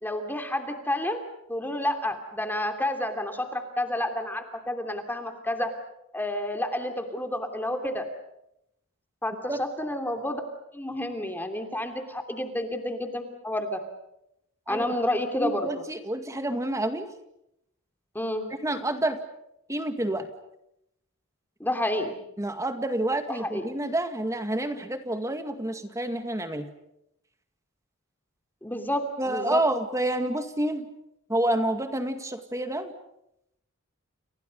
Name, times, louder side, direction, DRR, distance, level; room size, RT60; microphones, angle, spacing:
voice 1, 0.0-1.2 1.5-5.7 6.1-8.1 9.2-10.4 10.7-13.8 14.7-15.7 18.1-18.5 21.6-22.2 23.3-23.7 28.6-29.6, left 1 dB, 10° left, 5 dB, 2.9 m, -30 dB
voice 2, 15.4-17.1 18.6-19.2 19.7-20.3 22.4-26.7 29.2-30.9 31.3-32.9, right 1 dB, 15° right, 7 dB, 2.1 m, -28 dB
30.0 x 30.0 x 5.4 m, 0.80 s
head